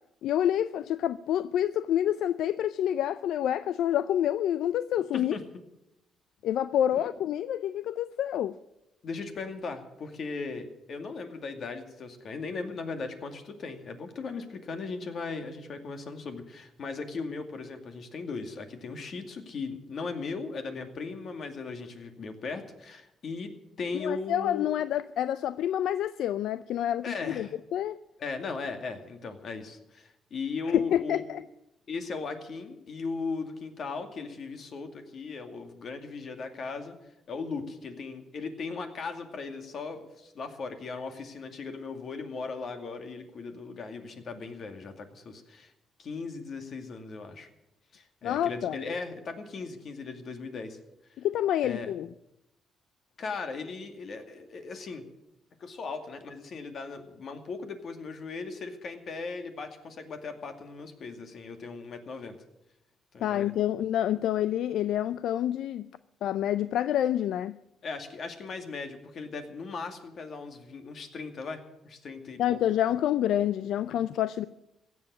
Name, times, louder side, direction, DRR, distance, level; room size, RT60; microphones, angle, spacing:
voice 1, 0.2-5.4 6.4-8.6 23.9-28.0 30.7-31.4 48.2-48.8 51.2-52.1 63.2-65.9 66.2-67.6 72.4-74.4, left 11 dB, 80° left, 0.4 m, -28 dB
voice 2, 9.0-23.5 23.8-24.7 27.0-27.5 28.2-31.2 31.9-36.9 37.3-45.7 46.0-47.5 47.9-50.8 51.6-51.9 53.2-55.0 55.6-62.4 63.1-63.5 67.8-72.6, left 4 dB, 55° left, 2.3 m, -38 dB
16.0 x 8.0 x 9.7 m
cardioid pair, 90°, 0 cm